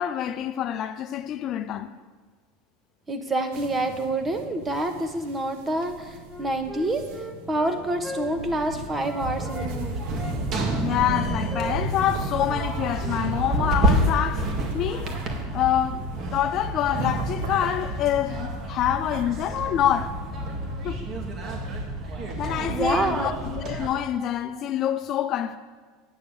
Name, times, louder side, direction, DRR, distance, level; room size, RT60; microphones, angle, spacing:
voice 1, 0.0-1.9 10.8-15.2 15.5-20.2 20.8-21.1 22.4-25.6, left 10 dB, 45° left, 0.5 m, -26 dB
voice 2, 3.1-7.0 7.5-9.9 22.7-23.4, right 1 dB, 20° right, 1.3 m, -27 dB
sound 1, 3.5-19.2, right 3 dB, 70° right, 1.1 m, -36 dB
Wind instrument woodwind instrument, 6.2-9.7 10.1-12.2 12.5-12.7 13.0-13.2 13.5-13.8, left 1 dB, 5° left, 1.1 m, -39 dB
sound 2, 9.2-23.9, right 1 dB, 45° right, 1.9 m, -29 dB
9.3 x 6.7 x 6.8 m
hypercardioid pair, 95°, 0 cm